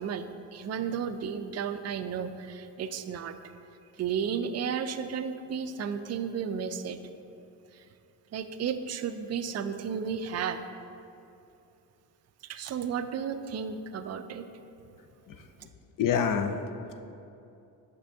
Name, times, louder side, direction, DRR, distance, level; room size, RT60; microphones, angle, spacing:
voice 1, 0.0-3.4 4.0-7.0 7.7-7.8 8.3-10.6 12.4-14.5, right 7 dB, 40° right, 9 dB, 0.4 m, -33 dB
voice 2, 15.3-15.7 16.0-17.1, left 7 dB, 50° left, 8 dB, 0.5 m, -29 dB
6.5 x 5.4 x 3.4 m, 2.7 s
cardioid pair, 75°, 42 cm